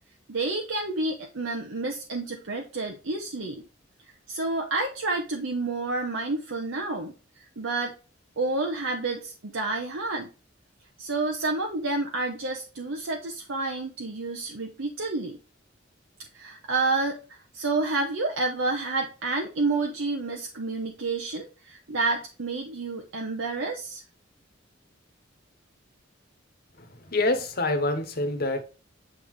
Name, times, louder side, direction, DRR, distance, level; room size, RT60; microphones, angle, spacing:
voice 1, 0.3-3.6 4.3-7.9 8.4-10.3 11.0-15.4 16.3-24.0, right 3 dB, 75° right, 1.0 m, -29 dB
voice 2, 26.8-28.6, left 2 dB, 50° left, 1.2 m, -26 dB
8.4 x 3.8 x 3.1 m
head